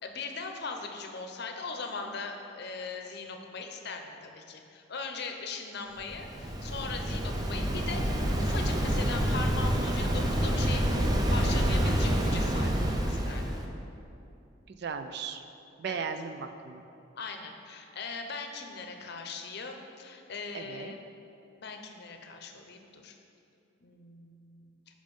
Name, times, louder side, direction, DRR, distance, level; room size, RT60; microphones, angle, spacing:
voice 1, 0.0-13.5 15.9-16.1 17.1-21.0 21.6-23.1 23.8-24.7, left 4 dB, 60° left, 4 dB, 0.7 m, -40 dB
Waves surf, 6.0-13.6, equal, 20° right, 0.6 m, -28 dB
voice 2, 14.7-15.4 15.8-16.8 20.5-20.9, right 6 dB, 60° right, 8 dB, 0.4 m, -37 dB
7.1 x 5.0 x 5.3 m, 2.7 s
head